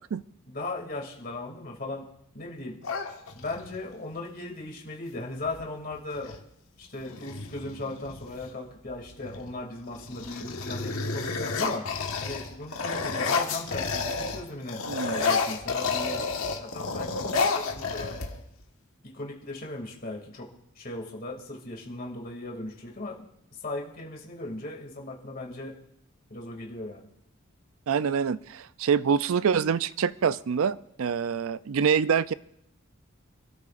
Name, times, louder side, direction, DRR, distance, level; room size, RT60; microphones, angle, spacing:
voice 1, 0.5-2.0 2.3-2.8 3.3-6.4 6.8-11.8 12.2-16.2 16.6-18.2 19.0-20.5 20.8-23.3 23.6-25.7 26.3-27.1, left 2 dB, 40° left, 0 dB, 2.6 m, -37 dB
sound 1, 2.8-3.8 5.5-5.6 5.9-6.4 7.0-8.5 9.1-9.5 9.9-14.4 14.7-18.6, left 4 dB, 85° left, 1.5 m, -30 dB
voice 2, 27.9-32.3, right 6 dB, 80° right, 16 dB, 0.4 m, -25 dB
28.0 x 13.5 x 2.5 m, 0.76 s
head